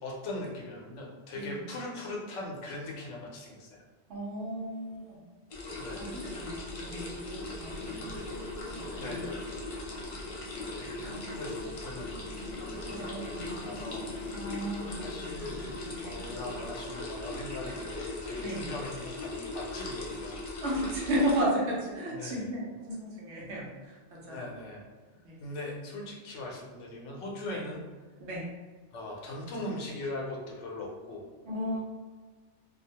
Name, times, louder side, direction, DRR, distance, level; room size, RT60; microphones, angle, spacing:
voice 1, 0.0-3.8 5.8-6.1 9.0-9.8 10.7-12.3 12.6-14.5 14.9-20.3 22.1-22.5 24.3-24.9 25.4-27.8 28.9-31.2, left 2 dB, 80° left, -2 dB, 1.0 m, -40 dB
voice 2, 4.1-5.2 5.9-8.2 8.7-9.2 12.9-13.4 14.3-14.9 17.7-17.8 18.3-18.6 20.6-24.5 25.2-25.4 27.5-27.6 28.2-28.5 31.4-31.8, right 1 dB, 75° right, -4 dB, 1.0 m, -34 dB
sound 1, 5.5-21.4, left 2 dB, 60° left, 0.3 m, -39 dB
sound 2, 5.7-16.7, right 1 dB, 40° left, 0.8 m, -47 dB
2.6 x 2.1 x 2.8 m, 1.4 s
omnidirectional pair, 1.2 m